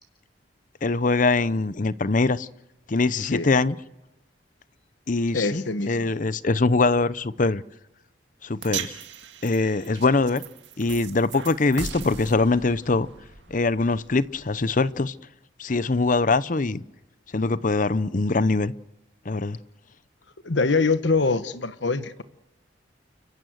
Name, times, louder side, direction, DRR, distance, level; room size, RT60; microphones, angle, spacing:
voice 1, 0.8-2.5 2.9-3.8 5.1-7.6 8.4-9.0 9.4-10.4 10.8-13.1 13.5-15.1 15.6-16.8 17.3-18.7 19.3-19.6, left 3 dB, 45° left, 0.7 m, -23 dB
voice 2, 5.3-6.1 20.4-22.2, left 3 dB, 75° left, 1.2 m, -24 dB
sound 1, 8.6-15.0, right 7 dB, 70° right, 2.0 m, -39 dB
29.5 x 15.5 x 8.0 m
head